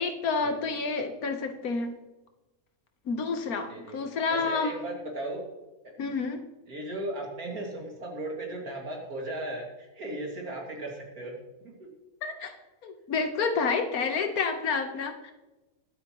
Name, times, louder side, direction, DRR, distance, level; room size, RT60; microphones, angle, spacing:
voice 1, 0.0-1.9 3.1-4.8 6.0-6.4 12.2-12.5 12.8-15.3, left 4 dB, 80° left, 6 dB, 1.6 m, -29 dB
voice 2, 3.7-4.0 4.3-5.5 5.8-5.9 6.7-11.9, right 1 dB, 90° right, 0 dB, 2.9 m, -37 dB
20.5 x 8.5 x 3.1 m, 1.1 s
omnidirectional pair, 1.5 m